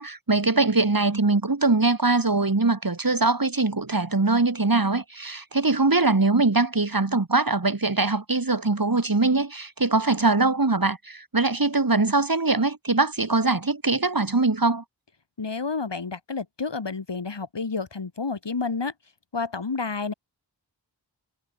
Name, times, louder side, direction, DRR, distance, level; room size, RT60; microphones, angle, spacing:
voice 1, 0.0-14.8, right 3 dB, 50° right, 3.8 m, -22 dB
voice 2, 15.4-18.9 19.3-20.1, left 4 dB, 70° left, 2.8 m, -30 dB
wide cardioid pair, 50°, 44 cm